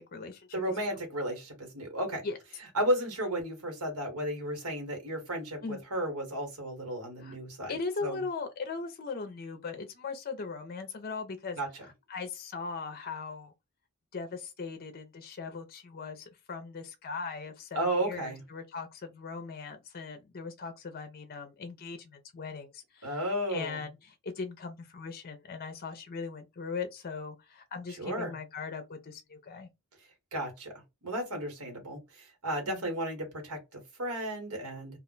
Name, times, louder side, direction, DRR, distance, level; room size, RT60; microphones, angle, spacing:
voice 1, 0.0-0.5 2.2-2.4 5.6-5.8 7.2-7.4 7.7-13.5 14.1-29.7 32.7-32.8, left 4 dB, 45° left, 0.5 m, -39 dB
voice 2, 0.5-2.2 2.7-8.2 11.6-11.7 17.7-18.4 23.0-23.8 28.0-28.3 30.3-30.7 31.0-35.0, right 1 dB, 85° right, 1.3 m, -33 dB
2.4 x 2.1 x 3.8 m
head